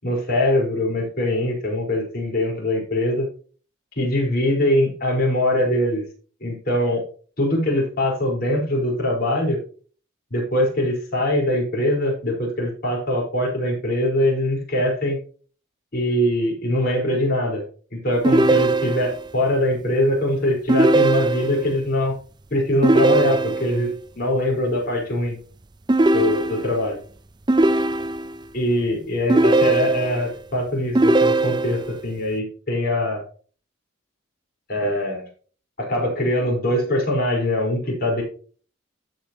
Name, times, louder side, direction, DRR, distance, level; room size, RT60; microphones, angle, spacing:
voice 1, 0.0-3.3 4.0-6.0 6.4-7.0 7.4-9.6 10.3-15.2 15.9-17.6 17.9-22.1 22.5-25.4 26.1-27.0 28.5-33.2 34.7-35.3 35.8-38.2, left 1 dB, 50° left, -1 dB, 4.6 m, -22 dB
sound 1, 18.2-19.3 20.7-21.7 22.8-23.9 25.9-26.9 27.5-28.4 29.3-30.3 30.9-32.0, right 2 dB, 20° right, 0.5 m, -19 dB
15.0 x 5.4 x 3.0 m, 0.41 s
head